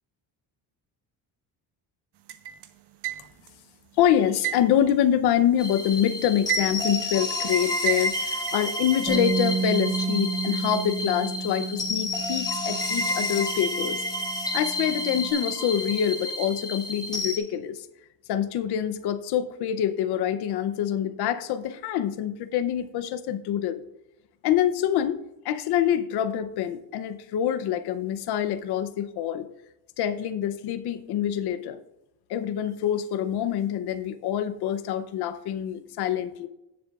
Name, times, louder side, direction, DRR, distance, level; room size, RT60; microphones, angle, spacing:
sound 1, 2.3-3.6 4.4-5.8 6.2-7.1 7.9-8.7, right 11 dB, 75° right, 0.9 m, -31 dB
voice 1, 4.0-14.0 14.5-17.9 18.3-23.8 24.4-29.5 30.0-31.8 32.3-36.5, left 10 dB, 70° left, 10 dB, 0.7 m, -26 dB
sound 2, 5.6-17.4, left 2 dB, 10° left, 1.3 m, -30 dB
Bass guitar, 9.1-15.3, right 5 dB, 15° right, 1.9 m, -32 dB
16.5 x 7.6 x 2.4 m, 0.93 s
cardioid pair, 165°, 41 cm